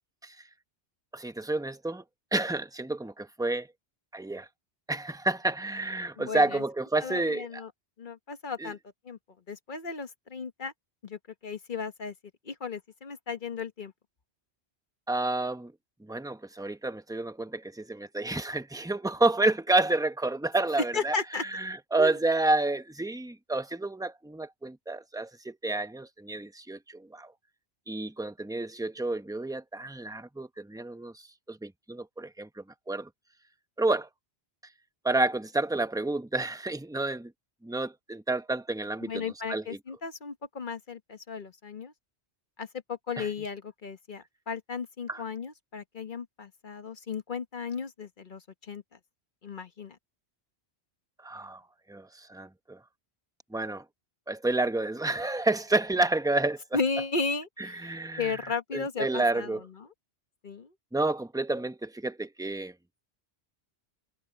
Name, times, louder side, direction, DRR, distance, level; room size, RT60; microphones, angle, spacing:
voice 1, 1.1-2.0 2.3-3.7 4.1-4.5 4.9-7.6 8.6-8.7 15.1-15.7 16.0-27.3 27.9-33.1 33.8-34.1 35.0-37.3 37.6-39.2 39.5-39.8 43.2-43.3 45.1-45.2 51.2-51.6 51.9-52.8 53.5-53.8 54.3-56.6 57.6-59.6 60.9-62.7, right 2 dB, 5° right, 0.8 m, -30 dB
voice 2, 6.2-6.6 7.0-7.7 8.0-8.8 9.0-9.2 9.5-10.7 11.0-12.1 12.4-13.9 20.9-21.4 22.0-22.2 39.0-41.9 42.6-48.8 49.4-50.0 56.7-59.5 60.4-60.7, left 5 dB, 50° left, 1.3 m, -35 dB
omnidirectional pair, 1.1 m